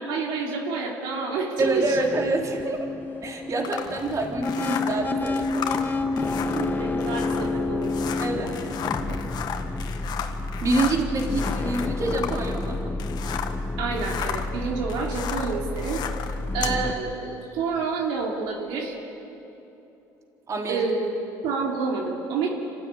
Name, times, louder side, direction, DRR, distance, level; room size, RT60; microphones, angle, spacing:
voice 1, 0.0-2.0 6.3-7.9 13.8-16.0 16.5-18.9 20.7-21.1 21.4-22.5, right 4 dB, 80° right, -1 dB, 2.9 m, -28 dB
sound 1, 1.6-16.9, left 3 dB, 25° left, 1.4 m, -30 dB
voice 2, 1.6-2.9 3.2-5.9 8.2-8.6 10.6-12.9 20.5-20.9, right 2 dB, 40° right, 1 dB, 3.8 m, -27 dB
sound 2, 3.6-13.6 13.9-16.8, left 8 dB, 60° left, 1.7 m, -34 dB
sound 3, 3.6-9.4, right 4 dB, 55° right, 3.4 m, -43 dB
25.5 x 15.0 x 9.9 m, 2.9 s
supercardioid pair, 90°, 8 cm